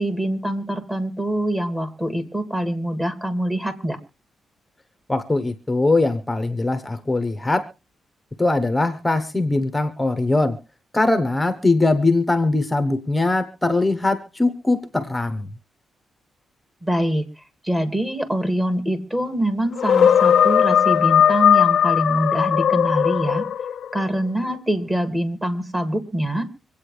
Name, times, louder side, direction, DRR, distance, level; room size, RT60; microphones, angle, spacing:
voice 1, 0.0-4.0 16.8-23.4 23.9-26.5, right 1 dB, 15° right, 9 dB, 2.3 m, -24 dB
voice 2, 5.1-7.7 8.4-10.6 10.9-15.5, left 2 dB, 10° left, 9 dB, 1.0 m, -21 dB
sound 1, 19.8-23.9, left 8 dB, 65° left, 0.6 m, -17 dB
25.5 x 8.6 x 3.3 m, 0.30 s
cardioid pair, 110°, 0 cm